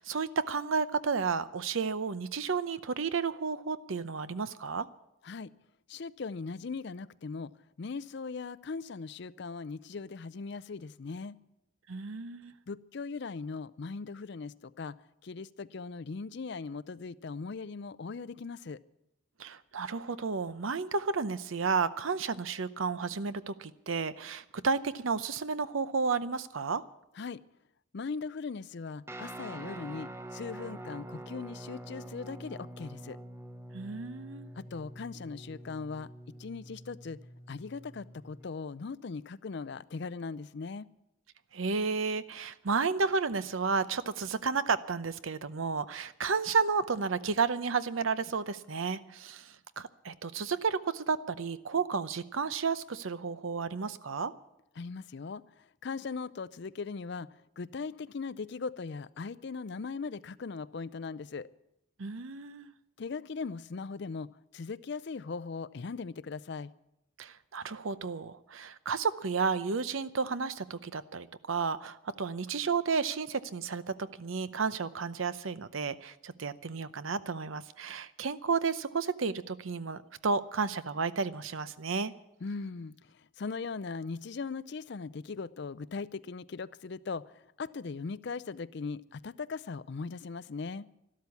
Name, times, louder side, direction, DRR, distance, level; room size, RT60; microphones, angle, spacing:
voice 1, 0.0-4.9 11.9-12.5 19.4-26.8 33.7-34.5 41.5-54.3 62.0-62.7 67.2-82.1, right 5 dB, 70° right, 14 dB, 0.7 m, -32 dB
voice 2, 5.9-7.5 7.8-11.4 12.7-15.0 15.2-18.8 27.2-27.4 27.9-33.2 34.6-36.1 36.4-37.2 37.5-40.9 54.8-57.3 57.6-61.5 63.0-66.7 82.4-90.9, left 4 dB, 55° left, 16 dB, 0.5 m, -39 dB
Guitar, 29.1-38.4, right 1 dB, 10° right, 0.7 m, -46 dB
12.5 x 12.5 x 8.3 m, 0.86 s
head